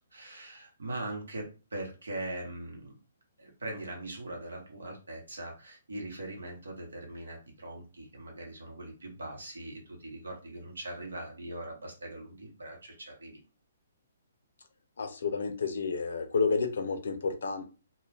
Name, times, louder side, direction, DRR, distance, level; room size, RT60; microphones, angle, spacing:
voice 1, 0.1-3.0 3.4-13.4, right 1 dB, 75° right, 1 dB, 1.0 m, -41 dB
voice 2, 15.0-17.7, left 4 dB, 65° left, 6 dB, 0.5 m, -30 dB
2.3 x 2.2 x 3.2 m, 0.33 s
figure-of-eight pair, 130°, 0 cm